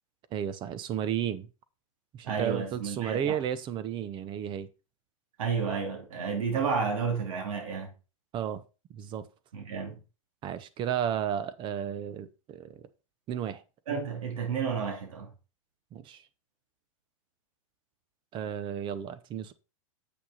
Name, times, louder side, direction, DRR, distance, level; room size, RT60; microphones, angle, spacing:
voice 1, 0.3-1.5 2.1-4.7 8.3-8.6 8.9-9.2 10.4-12.9 13.3-13.6 15.9-16.2 18.3-19.5, right 9 dB, 30° right, 0.8 m, -33 dB
voice 2, 2.2-3.4 5.4-7.9 9.5-10.0 13.9-15.3, right 5 dB, 80° right, 2.6 m, -31 dB
8.1 x 6.1 x 4.1 m
supercardioid pair, 140°, 17 cm